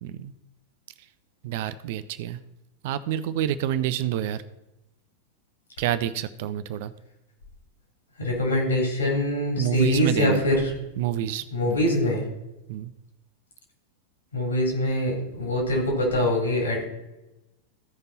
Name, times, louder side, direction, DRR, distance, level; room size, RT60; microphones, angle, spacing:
voice 1, 0.0-0.3 1.4-2.4 2.8-4.4 5.8-6.9 9.6-10.4 11.0-11.8 12.7-12.9, right 11 dB, 50° right, 13 dB, 0.5 m, -28 dB
voice 2, 8.2-10.7 11.5-12.2 14.3-16.8, left 1 dB, 70° left, -1 dB, 3.4 m, -24 dB
15.0 x 5.2 x 4.1 m, 0.96 s
figure-of-eight pair, 90°, 0 cm